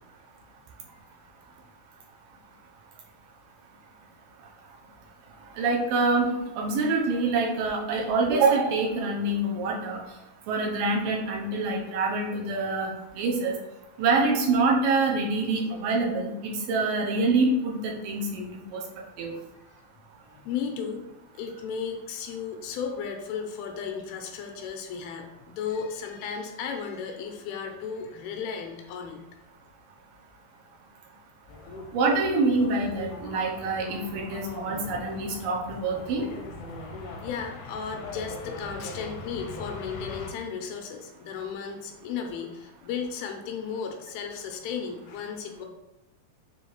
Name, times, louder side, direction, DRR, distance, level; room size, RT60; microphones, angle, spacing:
voice 1, 5.6-6.3 6.6-10.0 10.5-13.5 14.0-18.5 18.7-18.8 19.2-19.3 31.9-36.2, right 3 dB, 75° right, -1 dB, 2.3 m, -25 dB
voice 2, 19.5-19.8 20.3-21.1 21.3-29.2 36.9-45.7, left 6 dB, 90° left, 3 dB, 2.6 m, -35 dB
sound 1, 31.5-40.3, left 3 dB, 75° left, 1.8 m, -40 dB
7.2 x 3.2 x 4.5 m, 0.94 s
omnidirectional pair, 4.4 m